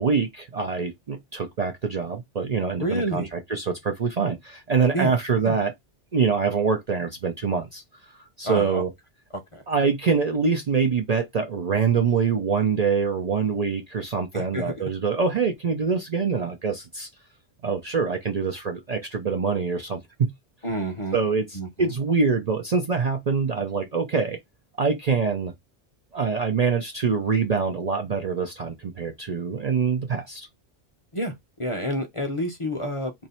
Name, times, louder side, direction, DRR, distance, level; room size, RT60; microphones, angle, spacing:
voice 1, 0.0-5.7 6.1-8.9 9.7-17.1 17.6-20.3 21.1-24.4 24.8-25.5 26.1-30.5, right 5 dB, 45° right, 0.6 m, -25 dB
voice 2, 2.8-3.3 4.9-5.1 5.4-5.6 8.4-8.8 9.3-9.6 14.3-14.9 20.6-21.2 21.5-21.9 31.1-33.1, equal, 30° left, 0.7 m, -29 dB
2.9 x 2.7 x 4.2 m
omnidirectional pair, 1.2 m